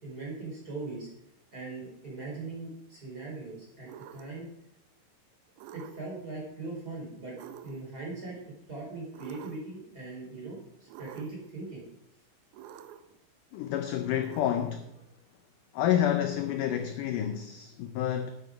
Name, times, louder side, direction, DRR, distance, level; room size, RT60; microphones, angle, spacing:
voice 1, 0.0-1.1 1.5-4.5 5.7-7.4 7.6-8.4 8.7-10.6 11.0-11.8, right 3 dB, 25° right, 4.4 m, -40 dB
sound 1, 3.9-4.5 5.6-6.2 7.4-8.0 9.1-9.8 10.9-11.5 12.5-13.2 14.2-14.9, right 9 dB, 80° right, 1.8 m, -48 dB
voice 2, 13.5-14.9 15.7-18.3, left 10 dB, 75° left, 2.0 m, -29 dB
12.0 x 9.7 x 5.0 m
omnidirectional pair, 4.3 m